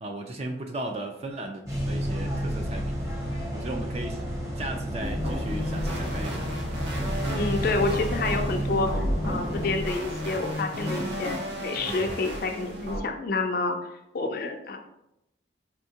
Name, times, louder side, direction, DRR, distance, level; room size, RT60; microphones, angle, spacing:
voice 1, 0.0-3.0 3.5-4.2 4.6-6.5, right 1 dB, 35° right, 4 dB, 0.3 m, -36 dB
sound 1, 1.7-9.7, equal, 15° right, 0.7 m, -31 dB
sound 2, 5.0-13.0, equal, 75° right, 0.8 m, -33 dB
voice 2, 7.3-13.8 14.1-14.8, left 3 dB, 50° left, 4 dB, 0.3 m, -29 dB
4.4 x 2.7 x 2.7 m, 0.85 s
head